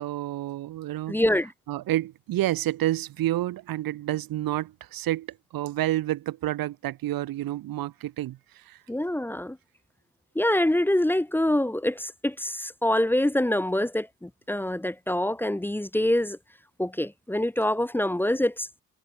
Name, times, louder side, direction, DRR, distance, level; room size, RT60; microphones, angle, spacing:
voice 1, 0.0-1.2 1.7-5.3 5.5-8.8, right 14 dB, 75° right, 2.7 m, -29 dB
voice 2, 1.1-1.5 8.9-9.6 10.4-16.4 16.8-18.8, left 1 dB, 5° left, 1.7 m, -25 dB
cardioid pair, 135°, 36 cm